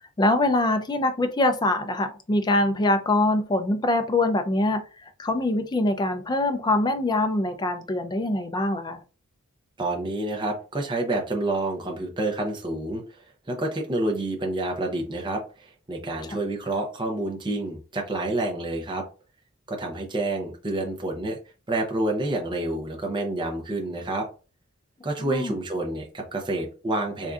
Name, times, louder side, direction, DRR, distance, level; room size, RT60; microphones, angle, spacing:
voice 1, 0.0-9.0 25.2-25.6, left 2 dB, 20° left, 7 dB, 0.4 m, -24 dB
voice 2, 9.8-13.2 13.5-19.0 19.7-21.4 21.7-24.3 25.0-27.3, right 2 dB, 20° right, 0 dB, 0.7 m, -28 dB
3.5 x 2.6 x 2.4 m, 0.34 s
head